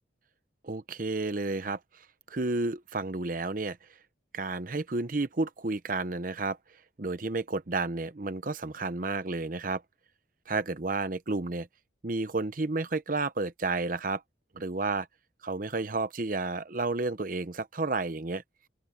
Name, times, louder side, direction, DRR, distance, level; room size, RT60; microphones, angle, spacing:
voice 1, 0.6-3.8 4.3-6.6 7.0-9.8 10.5-11.7 12.0-14.2 14.5-15.1 15.4-18.4, right 3 dB, 45° right, 0.8 m, -31 dB
open air
head